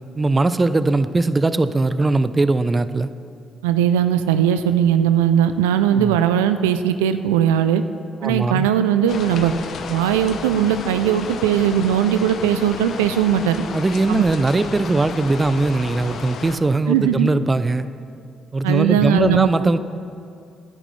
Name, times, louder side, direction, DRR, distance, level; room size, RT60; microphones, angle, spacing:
voice 1, 0.2-3.1 5.9-6.2 8.2-8.7 13.7-17.9 18.5-19.8, right 3 dB, 30° right, 13 dB, 0.5 m, -20 dB
voice 2, 3.6-7.8 8.2-9.5 9.9-13.6 14.1-14.2 16.9-17.3 18.6-19.5, right 9 dB, 85° right, 10 dB, 0.3 m, -19 dB
sound 1, 9.1-16.6, left 5 dB, 65° left, 0.8 m, -32 dB
17.5 x 9.8 x 3.2 m, 2.4 s
hypercardioid pair, 45°, 0 cm